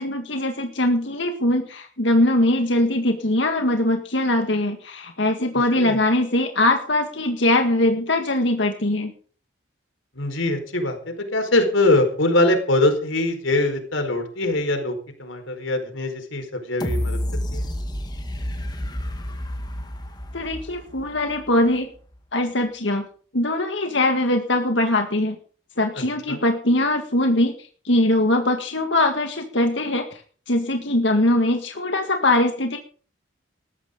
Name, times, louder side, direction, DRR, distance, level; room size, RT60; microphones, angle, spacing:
voice 1, 0.0-9.1 20.3-21.9 22.3-23.1 23.3-25.4 25.8-30.2 30.5-32.8, left 1 dB, 70° left, 4 dB, 2.0 m, -21 dB
voice 2, 10.2-17.2 17.5-17.7 26.0-26.4, left 2 dB, 85° left, 6 dB, 4.6 m, -23 dB
sound 1, 16.8-21.7 22.1-22.2, left 1 dB, 20° left, 2.0 m, -30 dB
19.5 x 14.5 x 3.9 m, 0.43 s
head